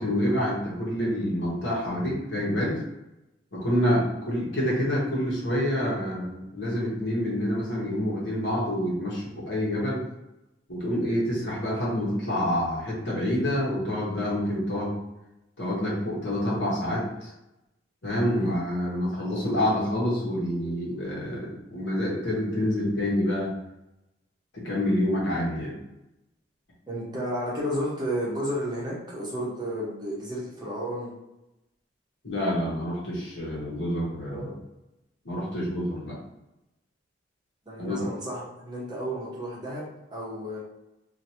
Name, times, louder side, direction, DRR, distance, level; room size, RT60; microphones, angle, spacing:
voice 1, 0.0-2.8 3.5-10.1 10.7-14.9 15.6-17.3 18.0-23.5 24.5-25.7 32.2-34.5 35.2-36.2 37.8-38.0, equal, 70° left, -5 dB, 1.2 m, -27 dB
voice 2, 26.9-31.1 34.3-34.5 37.7-40.6, equal, 20° right, -6 dB, 0.9 m, -32 dB
3.0 x 2.6 x 2.8 m, 0.94 s
head